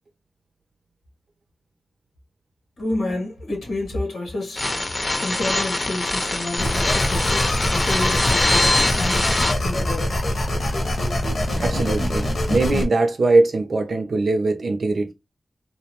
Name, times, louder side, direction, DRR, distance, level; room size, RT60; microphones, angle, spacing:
voice 1, 2.8-4.7 5.2-9.3 9.6-10.1, left 2 dB, 90° left, 1.2 m, -29 dB
sound 1, 4.6-9.5, left 2 dB, 40° left, 0.7 m, -23 dB
sound 2, 6.6-12.8, left 1 dB, 65° left, 0.9 m, -24 dB
voice 2, 11.6-15.1, right 2 dB, 65° right, 0.6 m, -21 dB
2.8 x 2.0 x 2.9 m
cardioid pair, 40°, 0 cm